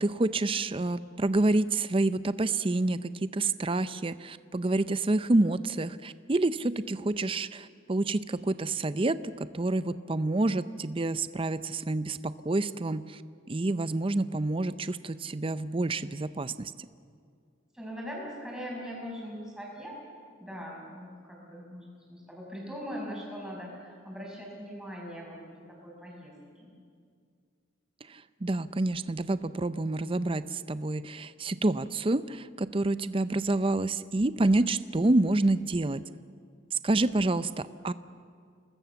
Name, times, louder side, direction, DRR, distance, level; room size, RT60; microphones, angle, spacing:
voice 1, 0.0-13.2 13.5-16.7 28.1-36.0 36.8-37.9, right 2 dB, 25° right, 14 dB, 0.5 m, -28 dB
voice 2, 17.7-20.0 20.4-26.3 26.6-26.7, equal, 5° right, -3 dB, 6.1 m, -41 dB
27.5 x 20.0 x 7.0 m, 2.2 s
head